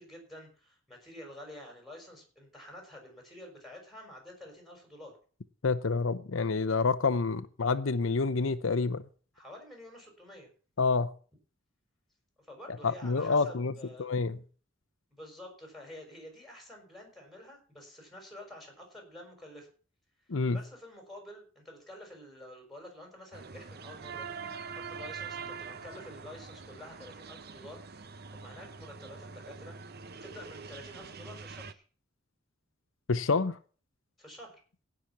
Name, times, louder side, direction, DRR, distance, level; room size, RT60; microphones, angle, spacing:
voice 1, 0.0-5.1 9.3-10.5 12.4-14.1 15.1-19.7 20.5-24.5 24.9-29.8 30.2-31.8 34.2-34.6, left 1 dB, ahead, 6.0 m, -49 dB
voice 2, 5.6-9.1 10.8-11.1 12.8-13.7 14.0-14.4 20.3-20.6 33.1-33.6, left 4 dB, 75° left, 0.7 m, -28 dB
sound 1, 23.3-31.7, right 5 dB, 50° right, 0.9 m, -44 dB
17.0 x 6.1 x 7.2 m
head